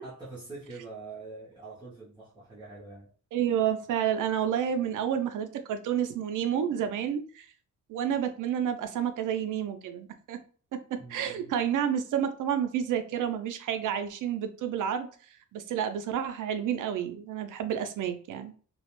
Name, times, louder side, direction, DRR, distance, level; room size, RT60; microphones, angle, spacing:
voice 1, 0.0-3.1 11.0-11.5, right 3 dB, 15° right, 0.6 m, -44 dB
voice 2, 3.3-7.5 7.9-10.4 10.9-15.1 15.5-18.5, right 9 dB, 75° right, 0.5 m, -30 dB
2.3 x 2.0 x 2.9 m
wide cardioid pair, 175°, 31 cm